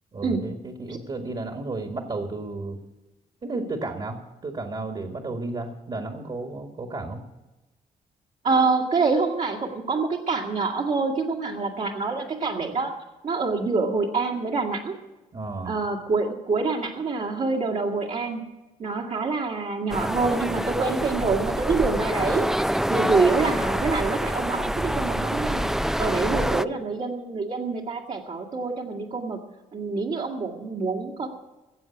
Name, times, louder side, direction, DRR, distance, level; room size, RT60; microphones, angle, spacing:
voice 1, 0.1-2.8 3.4-7.2 15.3-15.8 26.2-26.5, right 2 dB, 40° right, 5 dB, 1.8 m, -33 dB
voice 2, 8.4-12.9 13.2-15.0 15.7-18.4 18.8-22.5 22.9-25.6 26.0-29.4 29.7-31.3, right 4 dB, 60° right, -2 dB, 2.1 m, -26 dB
sound 1, 19.9-26.6, equal, 5° right, 0.4 m, -26 dB
16.0 x 7.5 x 8.3 m, 1.1 s
cardioid pair, 75°, 15 cm